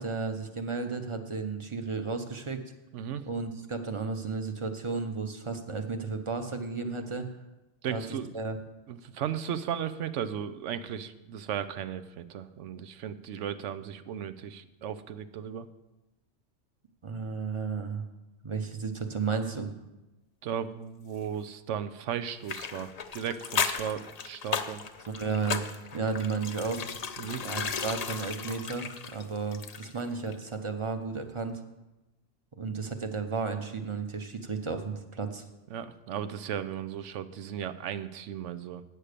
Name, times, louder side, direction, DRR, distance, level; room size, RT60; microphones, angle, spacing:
voice 1, 0.0-2.6 3.3-7.3 7.9-8.0 8.3-8.6 17.0-18.0 18.4-19.7 25.1-25.6 25.9-26.9 27.4-31.6 32.6-35.4, right 4 dB, 30° right, 6 dB, 0.7 m, -33 dB
voice 2, 2.9-3.2 7.8-8.3 8.9-15.7 20.4-24.8 27.2-27.4 35.7-38.8, right 9 dB, 85° right, 12 dB, 1.0 m, -36 dB
sound 1, 22.5-30.1 30.3-30.4, left 6 dB, 45° left, 0.5 m, -35 dB
8.8 x 6.6 x 6.6 m, 1.0 s
omnidirectional pair, 1.2 m